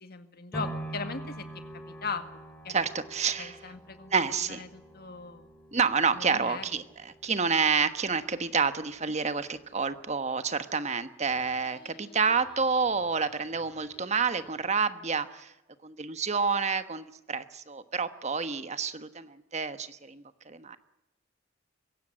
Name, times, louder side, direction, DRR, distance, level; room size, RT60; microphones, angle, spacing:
voice 1, 0.0-1.5 2.0-2.3 2.6-2.8 3.4-4.1 4.5-5.5 6.1-6.7, left 4 dB, 50° left, 8 dB, 1.9 m, -38 dB
sound 1, 0.5-8.6 9.1-9.2, right 1 dB, 10° left, 4.2 m, -44 dB
voice 2, 2.7-3.6 4.1-4.6 5.7-15.5 15.8-20.8, right 5 dB, 35° right, 11 dB, 1.2 m, -29 dB
sound 2, 11.2-15.0, left 2 dB, 30° left, 4.8 m, -57 dB
23.5 x 16.5 x 9.8 m, 0.95 s
head